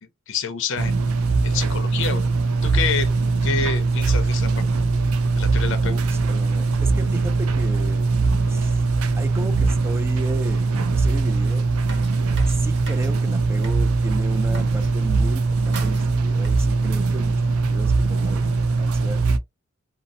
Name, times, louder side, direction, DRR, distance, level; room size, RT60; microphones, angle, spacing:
voice 1, 0.0-1.0 1.4-2.2 2.6-3.1 3.4-4.7 5.4-6.0, left 5 dB, 60° left, 0.6 m, -28 dB
sound 1, 0.8-19.4, right 3 dB, 85° right, 0.4 m, -21 dB
voice 2, 5.8-8.1 8.5-8.9 9.2-11.7 12.4-19.2, right 2 dB, 10° right, 0.3 m, -35 dB
sound 2, 11.5-13.2 13.4-13.9 14.3-14.9 15.6-16.1 16.4-16.7, right 3 dB, 55° right, 0.9 m, -42 dB
2.7 x 2.0 x 2.6 m
head